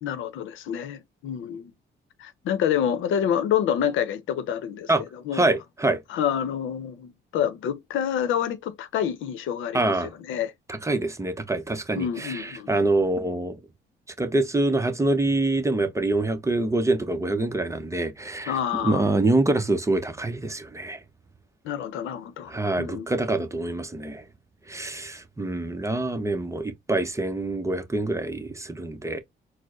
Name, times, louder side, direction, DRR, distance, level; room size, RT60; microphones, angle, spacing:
voice 1, 0.0-1.7 2.2-5.6 6.1-10.5 11.9-12.9 18.5-19.1 21.6-23.1, left 9 dB, 85° left, 0.7 m, -28 dB
voice 2, 5.3-6.0 9.7-10.1 10.7-13.6 14.2-18.5 18.8-21.0 22.5-24.2 24.7-29.2, right 2 dB, 15° right, 0.7 m, -25 dB
4.3 x 2.1 x 3.0 m
cardioid pair, 90°, 20 cm